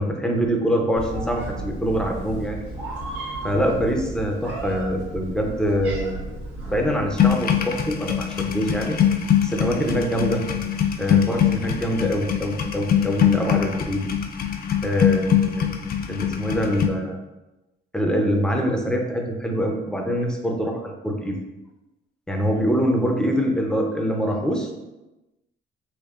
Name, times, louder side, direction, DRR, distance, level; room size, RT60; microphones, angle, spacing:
voice 1, 0.0-2.6 3.4-6.2 6.7-9.0 9.4-10.4 11.0-14.0 14.8-15.7 16.1-17.2 17.9-21.4 22.3-24.7, equal, 5° left, 1 dB, 0.6 m, -24 dB
Meow, 1.0-7.3, right 2 dB, 90° right, 1.3 m, -34 dB
sound 1, 7.2-16.9, left 9 dB, 50° left, 0.4 m, -23 dB
4.4 x 2.6 x 2.5 m, 1.0 s
cardioid pair, 90°, 20 cm